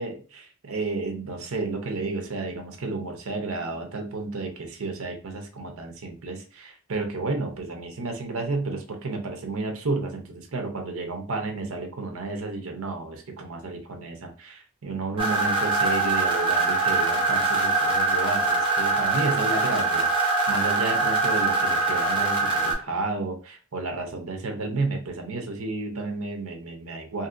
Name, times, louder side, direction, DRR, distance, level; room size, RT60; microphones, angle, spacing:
voice 1, 0.0-27.3, right 3 dB, 70° right, 3 dB, 0.7 m, -31 dB
sound 1, 15.2-22.7, right 3 dB, 20° right, 0.6 m, -23 dB
2.8 x 2.6 x 2.5 m, 0.38 s
head